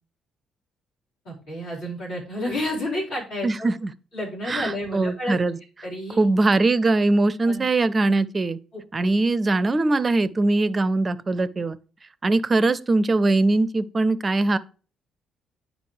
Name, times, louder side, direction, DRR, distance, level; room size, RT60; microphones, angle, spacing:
voice 1, 1.2-3.7 4.1-5.4 5.8-6.3 7.4-7.6 8.7-8.8, left 1 dB, 65° left, 4.0 m, -30 dB
voice 2, 3.4-3.9 4.5-5.6 6.2-8.6 8.9-11.8 12.2-14.6, right 2 dB, 30° right, 0.5 m, -21 dB
9.3 x 5.2 x 3.2 m
figure-of-eight pair, 45°, 0 cm